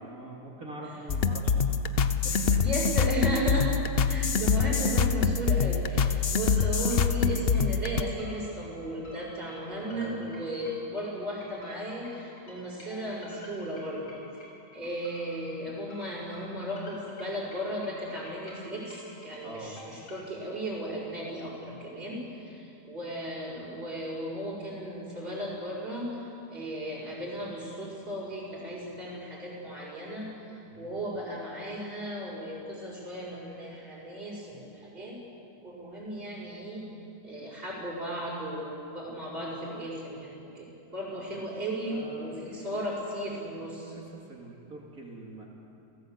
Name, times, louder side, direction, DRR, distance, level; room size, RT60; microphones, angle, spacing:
voice 1, 0.0-1.9 2.2-2.7 4.6-4.7 9.8-10.3 19.4-19.8 30.7-30.9 41.1-41.3 41.5-42.6 43.9-45.5, right 2 dB, 55° right, -2 dB, 2.9 m, -44 dB
sound 1, 1.1-8.0, left 5 dB, 50° left, 0.7 m, -25 dB
voice 2, 2.6-3.7 4.0-14.2 14.7-35.2 35.6-36.9 37.2-43.9, equal, 35° right, -8 dB, 6.1 m, -35 dB
sound 2, 6.5-20.2, left 2 dB, 80° left, 7.0 m, -51 dB
29.0 x 16.5 x 8.0 m, 2.8 s
omnidirectional pair, 1.8 m